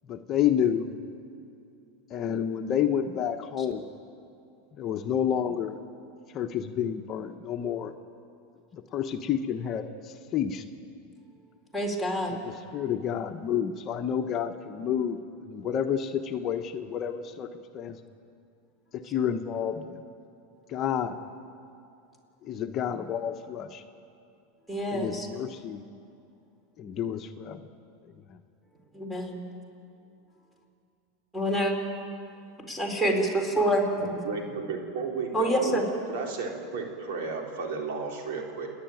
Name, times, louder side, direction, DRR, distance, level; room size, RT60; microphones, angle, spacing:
voice 1, 0.1-0.9 2.1-3.9 4.7-5.8 6.3-7.9 8.7-10.6 12.3-18.0 18.9-20.0 20.7-21.2 22.4-23.8 24.9-25.8 26.8-27.6 28.3-28.4, left 9 dB, 40° left, 6 dB, 1.1 m, -30 dB
voice 2, 11.7-12.3 24.7-25.3 28.9-29.5 31.3-31.7 32.7-34.2 35.3-35.8, right 1 dB, 5° right, 2 dB, 4.3 m, -27 dB
voice 3, 34.0-35.8 36.1-38.7, right 4 dB, 65° right, 0 dB, 4.1 m, -33 dB
29.5 x 10.5 x 9.3 m, 2.6 s
hypercardioid pair, 110°, 0 cm